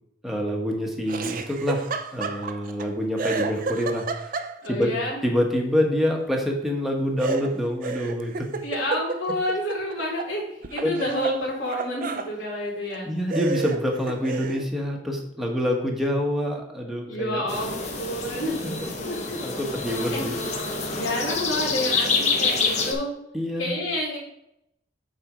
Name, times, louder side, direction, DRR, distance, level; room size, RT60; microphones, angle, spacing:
voice 1, 0.2-4.4 4.7-4.9 5.2-8.5 10.8-11.0 13.0-17.5 18.6-19.1 19.4-20.4 23.3-23.7, equal, ahead, 0 dB, 1.1 m, -26 dB
Laughter, 1.1-2.9 3.2-4.8 7.2-10.3 10.6-12.3 12.9-13.0 13.3-14.7, right 4 dB, 45° right, 0.5 m, -31 dB
voice 2, 4.6-5.2 8.6-10.4 10.7-13.1 17.0-18.6 19.0-19.4 20.1-20.2 20.9-23.1 23.6-24.2, left 1 dB, 85° left, -6 dB, 3.2 m, -29 dB
sound 1, 17.5-22.9, left 4 dB, 35° left, 1.0 m, -27 dB
8.0 x 4.2 x 4.9 m, 0.78 s
head